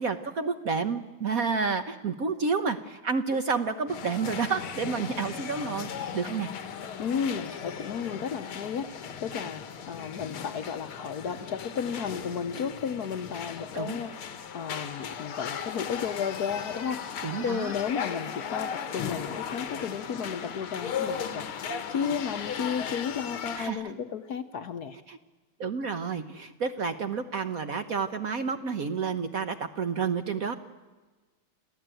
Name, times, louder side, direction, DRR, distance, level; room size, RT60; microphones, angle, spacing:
voice 1, 0.0-6.5 13.7-14.0 17.2-17.7 23.6-23.9 25.1-25.2 25.6-30.5, right 5 dB, 55° right, 9 dB, 1.1 m, -30 dB
sound 1, 3.9-23.7, left 7 dB, 85° left, 2.2 m, -37 dB
voice 2, 7.0-17.0 17.4-21.5 21.9-25.0, left 7 dB, 55° left, 10 dB, 1.2 m, -33 dB
27.5 x 16.0 x 9.0 m, 1.3 s
omnidirectional pair, 2.3 m